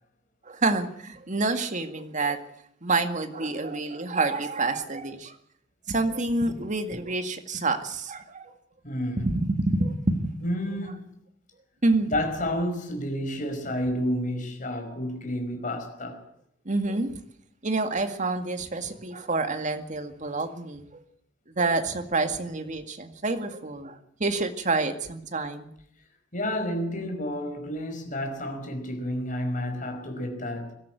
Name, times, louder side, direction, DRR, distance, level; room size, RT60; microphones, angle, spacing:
voice 1, 0.5-2.4 2.8-5.4 5.9-8.5 9.2-10.3 11.8-12.2 16.7-17.1 17.6-20.9 21.5-25.7, right 3 dB, 40° right, 2.1 m, -28 dB
voice 2, 8.8-9.3 10.4-11.0 12.1-16.3 26.3-30.7, left 1 dB, 45° left, 5.3 m, -30 dB
23.5 x 13.0 x 9.1 m
head